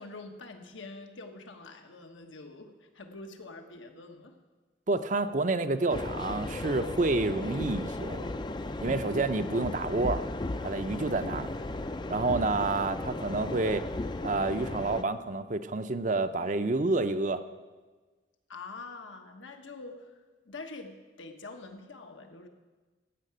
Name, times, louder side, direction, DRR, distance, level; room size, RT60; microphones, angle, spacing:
voice 1, 0.0-4.4 8.8-9.2 18.5-22.5, left 3 dB, 85° left, 4 dB, 1.3 m, -45 dB
voice 2, 4.9-8.3 8.8-10.3 10.6-11.5 12.1-13.9 14.2-17.4, right 3 dB, 40° right, 10 dB, 0.5 m, -29 dB
sound 1, 5.9-15.0, left 2 dB, 25° left, 0.4 m, -35 dB
14.5 x 5.8 x 8.8 m, 1.3 s
head